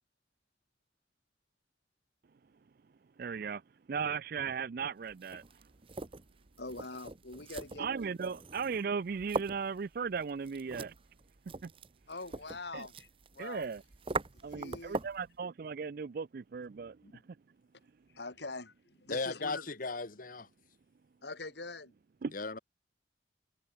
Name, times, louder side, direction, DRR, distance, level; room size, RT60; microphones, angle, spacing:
voice 1, 3.2-3.6 3.9-5.4 7.8-10.9 11.6-11.7 12.7-12.9 13.4-13.8 14.4-17.4 22.2-22.3, right 5 dB, 55° right, 0.4 m, -37 dB
sound 1, 5.1-15.3, right 3 dB, 30° right, 0.8 m, -42 dB
voice 2, 6.6-7.9 12.1-13.7 14.3-15.0 18.1-19.8 21.2-21.9, left 3 dB, 65° left, 2.5 m, -44 dB
voice 3, 19.1-20.5 22.3-22.6, left 3 dB, 50° left, 1.5 m, -36 dB
head